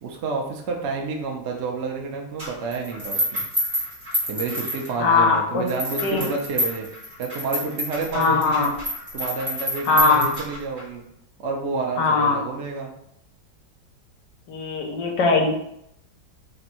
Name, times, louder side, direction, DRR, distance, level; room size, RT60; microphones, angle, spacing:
voice 1, 0.0-3.4 4.3-6.9 7.2-8.7 9.1-11.0 11.4-12.9, right 4 dB, 85° right, 1 dB, 0.6 m, -29 dB
sound 1, 2.4-5.2 5.7-10.8, left 1 dB, 25° right, 1.5 m, -28 dB
voice 2, 5.0-5.6 6.0-6.2 8.1-8.7 9.9-10.3 12.0-12.4 14.5-15.5, left 4 dB, 75° left, 1 dB, 1.4 m, -20 dB
3.4 x 2.6 x 4.2 m, 0.77 s
omnidirectional pair, 2.0 m